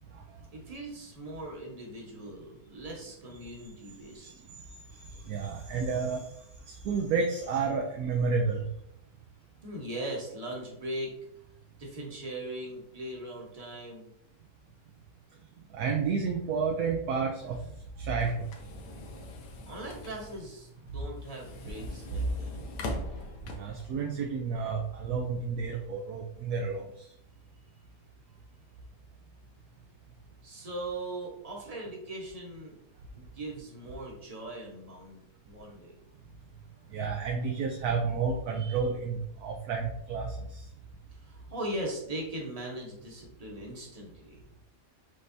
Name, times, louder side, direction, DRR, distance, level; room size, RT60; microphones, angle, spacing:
voice 1, 0.5-4.3 9.6-11.1 11.8-14.1 19.7-22.6 30.4-32.7 33.1-36.0 41.1-44.4, right 1 dB, 25° right, -2 dB, 1.0 m, -40 dB
voice 2, 5.3-6.2 6.7-8.6 15.7-17.6 18.0-18.4 23.5-26.8 36.9-40.3, right 5 dB, 70° right, 2 dB, 1.0 m, -30 dB
sound 1, 17.4-23.9, left 1 dB, 80° left, 1.3 m, -43 dB
5.2 x 3.3 x 2.7 m, 0.74 s
omnidirectional pair, 1.8 m